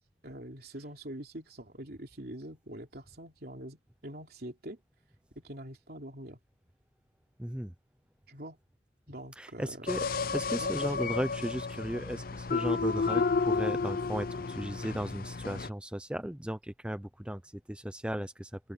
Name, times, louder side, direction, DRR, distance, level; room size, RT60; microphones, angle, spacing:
voice 1, 0.2-4.8 5.3-6.4 8.3-8.6 9.1-9.9 10.6-11.0, right 1 dB, 60° right, 3.2 m, -44 dB
voice 2, 7.4-7.7 9.4-10.1 10.3-18.7, equal, 5° right, 0.5 m, -36 dB
sound 1, 9.9-15.7, left 4 dB, 55° left, 0.7 m, -31 dB
open air
head